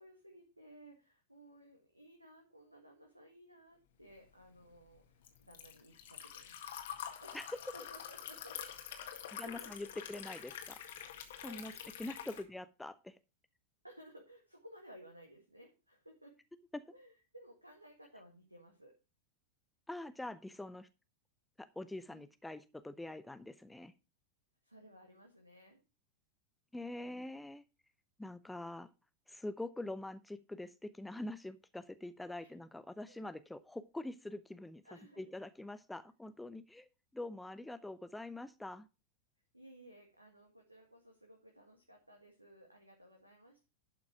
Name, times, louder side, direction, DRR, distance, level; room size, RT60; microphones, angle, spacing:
voice 1, 0.0-6.5 7.2-7.4 7.7-8.6 9.0-9.9 11.4-11.8 12.2-12.4 13.8-16.4 16.9-19.0 22.1-22.3 24.6-25.8 32.4-32.5 33.1-33.3 34.8-35.3 39.5-43.6, equal, 85° right, 1 dB, 1.9 m, -58 dB
Liquid, 4.2-12.4, left 9 dB, 55° left, 1.8 m, -47 dB
voice 2, 9.3-10.8 11.4-11.7 12.0-13.2 16.7-16.8 19.9-20.9 21.6-23.9 26.7-27.6 28.2-28.9 29.3-34.8 35.2-38.9, left 2 dB, 5° left, 12 dB, 0.6 m, -45 dB
11.5 x 6.0 x 4.8 m, 0.30 s
figure-of-eight pair, 90°, 0 cm